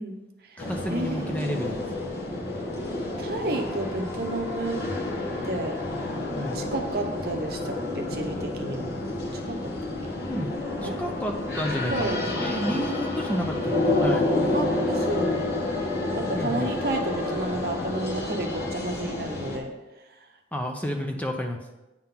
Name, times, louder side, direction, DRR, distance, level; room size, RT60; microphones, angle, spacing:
voice 1, 0.0-1.6 3.2-4.8 5.4-5.8 6.5-9.0 9.3-9.9 10.8-11.0 11.9-12.9 14.5-15.5 16.1-19.7 21.1-21.3, right 2 dB, 55° right, 4 dB, 0.9 m, -32 dB
sound 1, 0.6-19.6, left 2 dB, 55° left, 1.6 m, -29 dB
voice 2, 0.6-1.8 6.3-6.6 10.2-10.5 10.8-14.3 16.4-16.7 20.5-21.6, equal, 10° left, 3 dB, 0.6 m, -30 dB
Brass instrument, 2.9-7.0, left 6 dB, 80° left, 1.4 m, -49 dB
8.9 x 3.8 x 5.8 m, 1.0 s
head